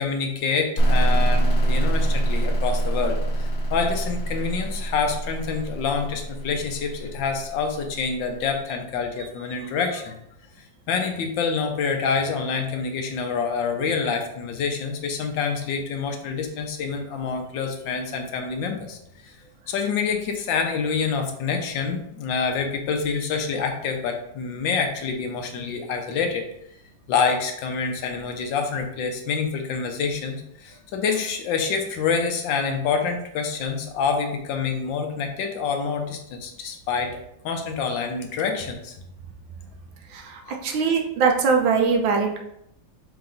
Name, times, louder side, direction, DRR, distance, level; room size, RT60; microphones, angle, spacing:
voice 1, 0.0-10.2 10.9-19.0 19.7-26.5 27.1-38.9 40.4-40.5, left 5 dB, 75° left, 4 dB, 1.4 m, -27 dB
sound 1, 0.8-8.3, right 1 dB, 55° left, 0.8 m, -24 dB
voice 2, 40.1-42.4, right 5 dB, 85° right, 2 dB, 1.5 m, -22 dB
4.7 x 2.9 x 3.8 m, 0.77 s
omnidirectional pair, 2.1 m